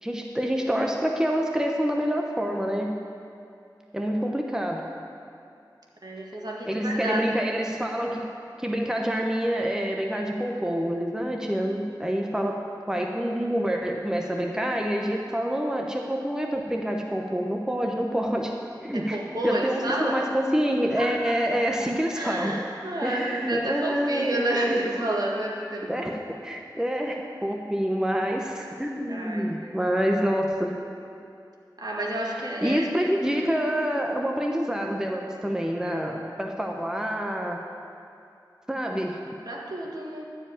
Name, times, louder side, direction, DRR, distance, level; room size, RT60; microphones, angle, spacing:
voice 1, 0.0-2.9 3.9-4.8 6.7-8.3 8.6-12.6 12.9-18.5 18.8-19.2 19.4-22.6 23.0-24.9 25.9-30.7 32.6-37.6 38.7-39.2, equal, 10° right, 1 dB, 1.0 m, -27 dB
voice 2, 6.0-7.4 18.9-20.2 21.0-26.1 29.1-29.9 31.8-33.4 39.5-40.2, right 1 dB, 55° right, -2 dB, 1.8 m, -31 dB
13.0 x 4.9 x 8.8 m, 2.5 s
wide cardioid pair, 40°, 8 cm